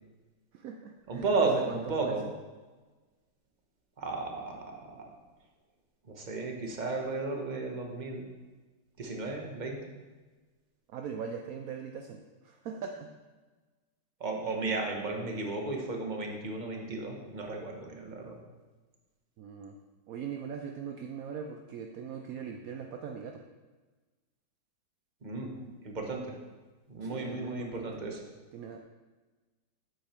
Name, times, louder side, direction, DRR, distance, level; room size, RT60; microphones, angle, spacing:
voice 1, 0.5-1.8 2.0-2.3 10.9-13.1 19.4-19.7 20.1-23.4 27.0-27.9 28.5-28.8, right 7 dB, 70° right, 4 dB, 0.8 m, -40 dB
voice 2, 1.1-2.2 4.0-5.1 6.1-8.3 9.0-9.8 14.2-18.4 25.2-25.5 25.8-26.3 26.9-28.2, right 3 dB, 30° right, 1 dB, 1.1 m, -34 dB
8.4 x 8.1 x 4.4 m, 1.3 s
omnidirectional pair, 2.1 m